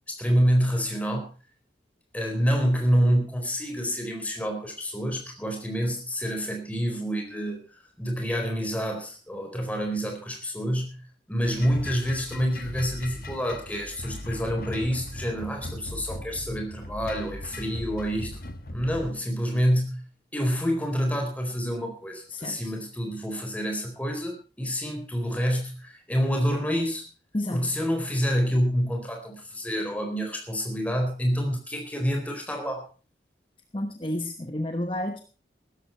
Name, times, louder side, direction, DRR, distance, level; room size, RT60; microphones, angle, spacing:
voice 1, 0.1-1.3 2.1-7.6 8.0-11.0 11.3-18.4 18.7-19.9 20.3-27.1 27.5-32.9, equal, 10° left, 3 dB, 4.1 m, -27 dB
sound 1, 11.4-19.1, left 1 dB, 55° left, 1.3 m, -38 dB
voice 2, 22.3-22.7 27.3-27.8 33.7-35.2, left 1 dB, 30° left, 7 dB, 1.1 m, -31 dB
16.0 x 13.0 x 4.5 m, 0.35 s
head